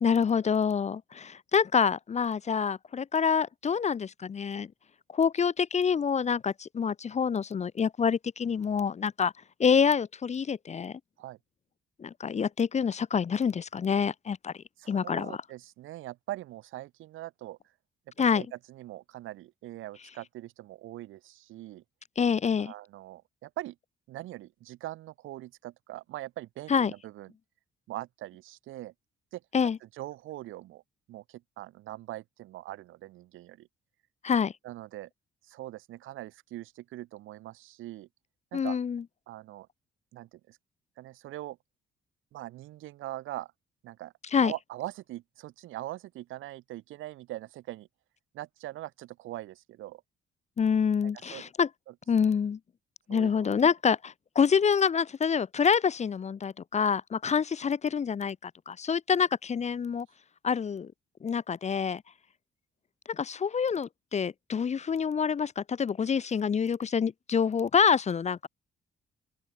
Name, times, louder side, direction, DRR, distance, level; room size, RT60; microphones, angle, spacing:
voice 1, 0.0-4.7 5.1-9.3 9.6-10.9 12.0-14.5 14.9-15.4 18.2-18.5 22.2-22.7 26.7-26.9 29.5-29.8 34.2-34.5 38.5-39.0 44.3-44.5 50.6-51.7 52.1-52.6 53.1-60.1 60.4-60.9 61.2-62.0 63.1-68.5, left 6 dB, 35° left, 0.7 m, -27 dB
voice 2, 14.8-17.6 18.3-21.8 22.6-23.8 24.1-27.3 27.9-28.9 29.3-29.4 29.8-30.8 31.1-33.7 34.6-35.1 35.4-38.1 38.5-38.8 39.3-39.7 40.1-40.6 41.0-41.6 42.3-43.5 43.8-44.1 44.4-47.9 48.3-50.0 51.0-51.4 51.9-52.0 52.2-52.3 53.1-53.5, right 15 dB, 85° right, 1.3 m, -42 dB
open air
cardioid pair, 90°, 20 cm